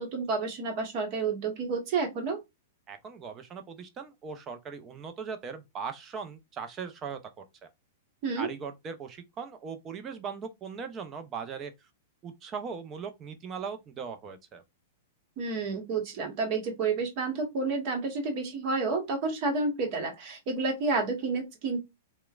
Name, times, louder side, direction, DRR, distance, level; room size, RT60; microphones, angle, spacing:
voice 1, 0.0-2.4 8.2-8.5 15.4-21.8, right 4 dB, 50° right, 1.1 m, -30 dB
voice 2, 2.9-7.7 8.4-11.7 12.2-14.6, right 6 dB, 30° right, 0.6 m, -39 dB
3.0 x 2.2 x 2.3 m
hypercardioid pair, 115°, 0 cm